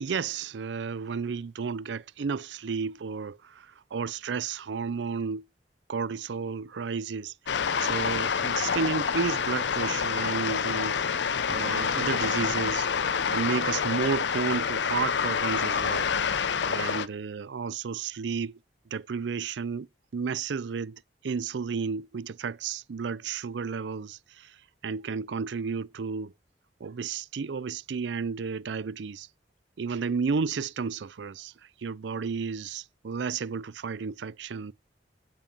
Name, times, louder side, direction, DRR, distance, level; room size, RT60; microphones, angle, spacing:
voice 1, 0.0-5.4 5.9-7.3 7.8-11.0 11.5-12.9 13.3-16.1 16.7-18.6 18.9-19.9 20.1-24.5 24.8-26.3 26.8-29.3 29.8-31.5 31.8-34.7, right 5 dB, 85° right, 0.5 m, -32 dB
sound 1, 7.5-17.1, left 6 dB, 85° left, 0.7 m, -27 dB
8.8 x 7.6 x 7.4 m
head